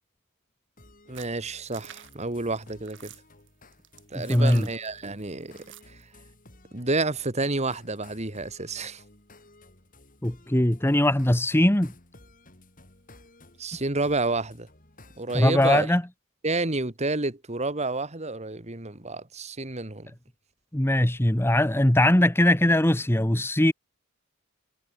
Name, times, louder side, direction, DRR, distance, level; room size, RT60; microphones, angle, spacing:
sound 1, 0.8-15.9, left 2 dB, 40° left, 5.4 m, -54 dB
voice 1, 1.1-3.1 4.1-5.5 5.9-6.0 6.7-9.0 13.6-14.7 15.2-15.9 16.4-20.1, right 2 dB, 30° right, 1.8 m, -29 dB
sound 2, 1.1-6.0, right 11 dB, 60° right, 7.4 m, -49 dB
voice 2, 4.1-4.7 10.2-11.9 15.3-16.0 20.7-23.7, left 1 dB, 10° left, 1.1 m, -21 dB
head